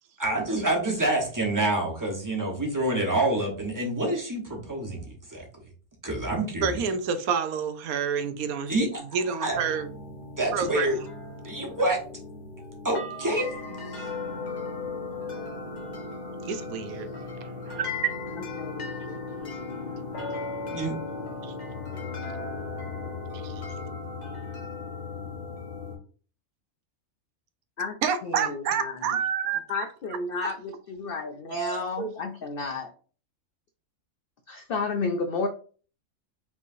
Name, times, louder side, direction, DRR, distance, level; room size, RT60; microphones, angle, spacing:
voice 1, 0.2-5.4 6.0-6.8 8.7-9.0 9.4-9.6 10.4-11.0 11.4-12.0 12.8-13.5 13.9-14.1 20.7-21.0, right 1 dB, 15° right, 1.0 m, -27 dB
voice 2, 6.6-8.9 9.1-9.9 10.5-10.9 16.5-17.1 17.6-18.1 21.4-21.5 23.3-23.6 28.0-29.6 31.5-32.1, right 7 dB, 85° right, 1.1 m, -28 dB
sound 1, 9.5-26.0, left 3 dB, 35° left, 0.9 m, -36 dB
voice 3, 18.6-19.2 19.8-20.1 27.8-28.0 28.2-29.2 29.7-32.9 34.5-35.5, left 4 dB, 70° left, 0.5 m, -32 dB
5.2 x 3.2 x 2.6 m
omnidirectional pair, 1.5 m